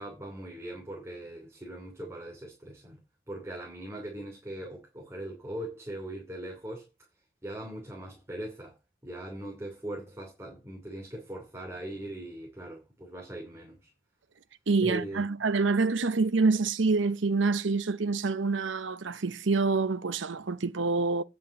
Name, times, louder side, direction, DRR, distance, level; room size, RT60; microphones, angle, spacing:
voice 1, 0.0-3.0 3.3-6.9 7.4-8.8 9.0-13.9 14.8-15.2, right 1 dB, 15° right, 2.9 m, -40 dB
voice 2, 14.7-21.2, right 4 dB, 70° right, 0.8 m, -26 dB
9.7 x 5.3 x 8.2 m
head